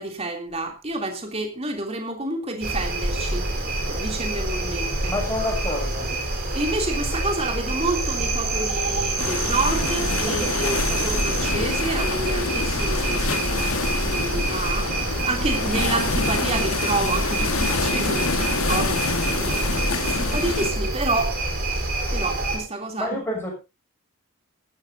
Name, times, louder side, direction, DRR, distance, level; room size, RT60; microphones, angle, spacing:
voice 1, 0.0-3.6 3.9-5.1 6.5-13.7 14.1-14.9 15.2-21.4 21.7-23.2, right 2 dB, 30° right, 3 dB, 3.1 m, -29 dB
sound 1, 2.6-22.6, right 2 dB, 45° right, 4.4 m, -26 dB
voice 2, 5.1-6.1 10.3-10.9 23.0-23.5, left 1 dB, 10° left, -1 dB, 6.8 m, -29 dB
sound 2, 9.2-20.7, left 4 dB, 75° left, 1.8 m, -27 dB
18.0 x 14.0 x 2.8 m, 0.27 s
head